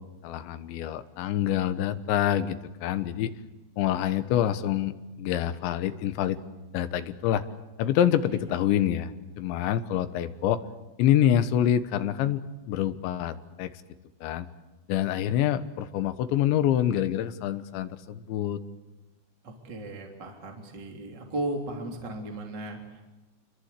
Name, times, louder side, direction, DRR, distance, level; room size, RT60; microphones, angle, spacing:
voice 1, 0.2-3.3 3.8-6.4 6.7-7.4 7.8-9.1 9.4-10.6 11.0-13.7 14.2-14.5 14.9-18.6, left 11 dB, 75° left, 11 dB, 3.3 m, -26 dB
voice 2, 19.4-23.0, right 1 dB, 25° right, 2 dB, 3.1 m, -36 dB
28.5 x 22.5 x 8.3 m, 1.1 s
omnidirectional pair, 5.6 m